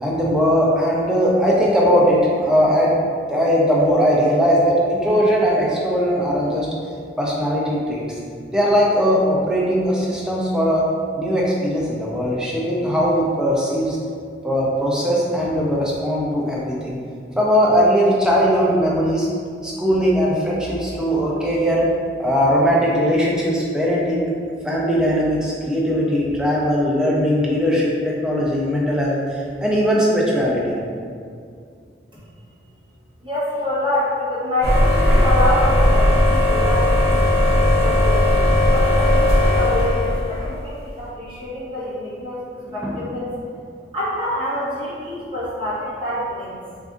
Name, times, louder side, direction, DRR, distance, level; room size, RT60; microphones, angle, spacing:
voice 1, 0.0-2.9 3.3-6.7 7.2-8.2 8.5-10.8 11.2-14.0 14.4-17.0 17.4-19.3 19.6-21.9 22.2-24.3 24.6-30.8 42.8-43.1, equal, 5° right, -5 dB, 0.4 m, -19 dB
voice 2, 33.2-38.3 38.7-42.4 42.7-43.3 43.9-46.5, left 1 dB, 30° right, -11 dB, 1.0 m, -26 dB
sound 1, 34.6-40.6, left 1 dB, 60° right, 0.8 m, -17 dB
2.5 x 2.3 x 3.6 m, 2.2 s
head